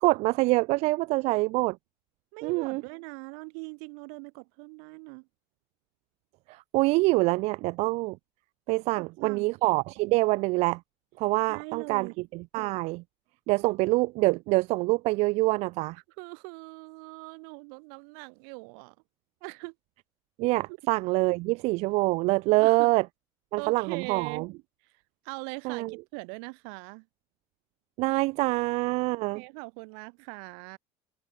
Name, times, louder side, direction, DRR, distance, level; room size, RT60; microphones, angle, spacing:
voice 1, 0.0-1.8 2.4-2.8 6.5-8.2 8.7-10.8 11.2-13.0 13.5-16.0 20.4-23.0 23.5-24.5 25.6-25.9 28.0-29.4, right 23 dB, 55° right, 0.5 m, -25 dB
voice 2, 2.3-5.3 9.0-9.6 11.5-12.1 16.2-19.0 19.4-19.7 20.7-20.8 22.6-22.9 23.6-24.5 24.8-24.9 25.2-27.1 29.3-30.8, right 40 dB or more, 75° right, 2.7 m, -41 dB
cardioid pair, 170°, 13 cm